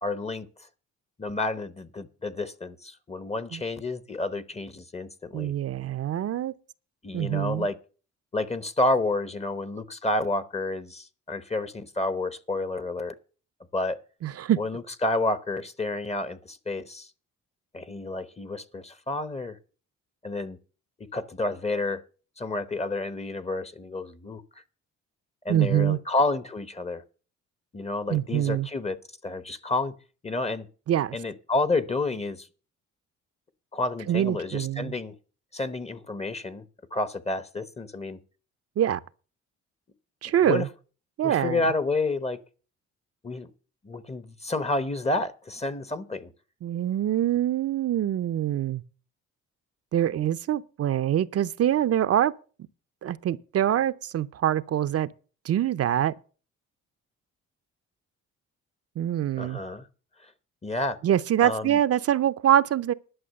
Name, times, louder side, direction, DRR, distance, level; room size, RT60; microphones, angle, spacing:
voice 1, 0.0-0.5 1.2-5.5 7.0-7.8 8.3-13.2 13.7-14.0 14.6-17.1 17.7-19.6 20.2-20.6 21.1-22.0 22.4-24.4 25.4-27.0 27.7-29.0 29.2-29.9 30.2-30.7 31.1-32.5 33.7-35.1 35.5-36.6 36.9-38.2 40.5-40.7 41.2-42.4 43.2-43.5 43.8-46.3 59.4-59.9 60.2-60.3 60.6-61.0 61.4-61.8, left 2 dB, 20° left, 0.9 m, -30 dB
voice 2, 5.3-6.5 7.1-7.7 14.2-14.6 25.5-26.0 28.1-28.7 30.9-31.2 34.1-34.9 38.8-39.0 40.2-40.7 41.2-41.6 46.6-48.8 49.9-52.3 53.0-55.1 55.4-56.1 59.0-59.6 61.0-62.9, right 11 dB, 50° right, 0.6 m, -24 dB
11.5 x 6.0 x 7.7 m
cardioid pair, 90°, 30 cm